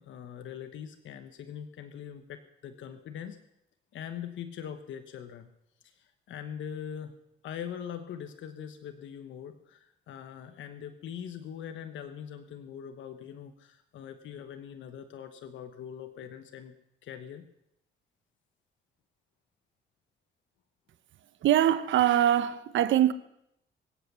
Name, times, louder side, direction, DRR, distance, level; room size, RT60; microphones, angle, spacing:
voice 1, 0.0-3.4 3.9-5.5 5.8-7.2 7.4-16.7 17.0-17.5, left 8 dB, 75° left, 1.3 m, -42 dB
voice 2, 21.4-23.1, right 11 dB, 70° right, 1.1 m, -23 dB
23.0 x 8.4 x 7.0 m
cardioid pair, 90°, 20 cm